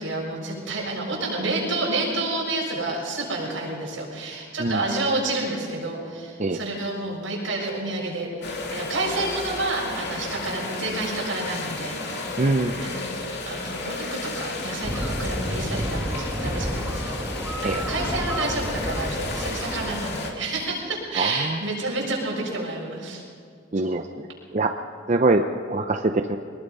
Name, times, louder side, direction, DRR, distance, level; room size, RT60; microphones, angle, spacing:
voice 1, 0.0-8.3 8.5-12.3 12.8-13.0 13.5-23.2, right 2 dB, 80° right, -3 dB, 7.0 m, -29 dB
sound 1, 8.4-20.3, left 2 dB, 60° left, 2.6 m, -33 dB
voice 2, 12.4-12.8 17.6-17.8 21.2-21.6 23.7-24.3 24.5-24.7 25.1-26.4, right 2 dB, 40° right, 6 dB, 0.7 m, -23 dB
sound 2, 14.8-20.0, equal, 10° right, 1.8 m, -30 dB
23.5 x 20.5 x 5.5 m, 2.3 s
head